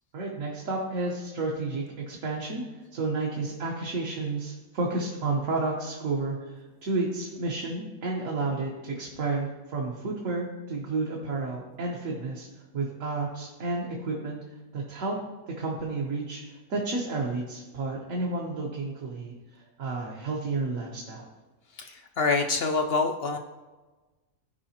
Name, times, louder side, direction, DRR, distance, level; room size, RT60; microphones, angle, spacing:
voice 1, 0.1-2.6 2.9-12.5 12.7-14.4 14.7-15.2 15.5-21.3, right 3 dB, 65° right, -2 dB, 1.4 m, -31 dB
voice 2, 21.8-23.4, left 4 dB, 65° left, 5 dB, 0.6 m, -26 dB
14.0 x 4.8 x 2.9 m, 1.2 s
omnidirectional pair, 1.5 m